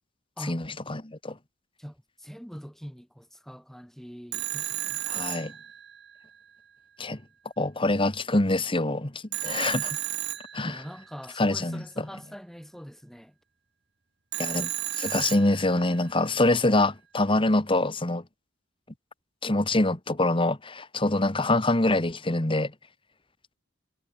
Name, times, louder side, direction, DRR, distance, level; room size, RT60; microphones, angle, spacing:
voice 1, 0.5-1.3 5.1-5.5 7.0-7.2 7.6-10.0 10.5-10.7 11.4-12.1 14.4-14.7 15.0-18.2 19.4-22.7, left 2 dB, 25° left, 1.5 m, -25 dB
voice 2, 1.8-5.0 10.6-13.3, equal, ahead, 6.4 m, -43 dB
Telephone, 4.3-6.2 9.3-11.1 14.3-16.0, right 14 dB, 55° right, 6.8 m, -33 dB
head